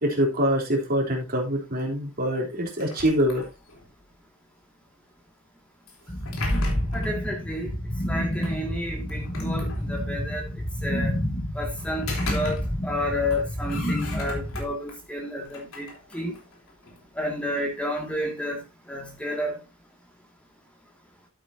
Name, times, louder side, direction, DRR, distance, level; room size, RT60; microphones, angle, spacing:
voice 1, 0.0-3.4, equal, 45° right, 3.6 m, -24 dB
sound 1, 2.8-3.9 5.9-7.2 8.4-8.5 9.1-10.2 11.8-13.0 13.3-14.9 15.4-17.1, left 1 dB, 70° left, 3.7 m, -34 dB
sound 2, 6.1-14.6, equal, 20° left, 2.6 m, -30 dB
voice 2, 6.9-7.8 8.1-10.5 10.8-11.2 11.5-16.4 17.2-18.6 18.9-19.6, left 1 dB, 5° left, 2.3 m, -31 dB
12.0 x 8.7 x 2.8 m
head